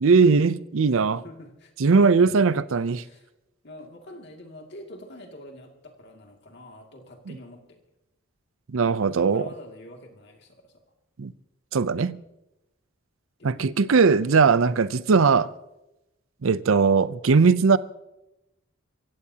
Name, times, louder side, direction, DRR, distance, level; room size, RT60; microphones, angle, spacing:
voice 1, 0.0-1.2 1.8-3.0 7.3-7.4 8.7-9.4 11.2-11.3 11.7-12.2 13.4-15.5 16.4-17.8, right 5 dB, 65° right, 0.5 m, -19 dB
voice 2, 0.9-1.7 2.2-2.3 3.0-3.3 3.6-7.8 8.8-10.8 13.4-13.7, left 1 dB, 50° left, 2.4 m, -45 dB
26.5 x 15.5 x 2.8 m
head